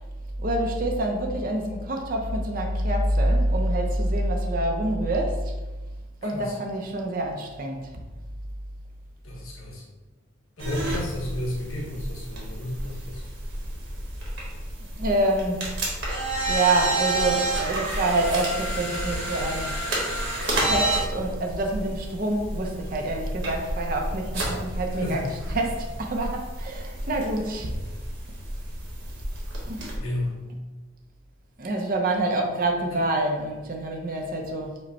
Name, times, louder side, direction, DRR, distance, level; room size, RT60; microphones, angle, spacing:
voice 1, 0.4-5.5 6.2-8.0 14.9-15.7 16.2-19.8 20.6-25.3 25.5-27.7 29.6-29.9 31.6-34.8, right 1 dB, 40° right, 1 dB, 0.5 m, -26 dB
voice 2, 6.2-6.6 9.2-9.8 10.6-13.2 24.9-25.3 30.0-30.4 32.9-33.1, left 1 dB, 90° left, -2 dB, 0.9 m, -32 dB
sound 1, 10.6-30.0, right 2 dB, 65° right, 1.1 m, -30 dB
5.1 x 2.2 x 4.0 m, 1.2 s
head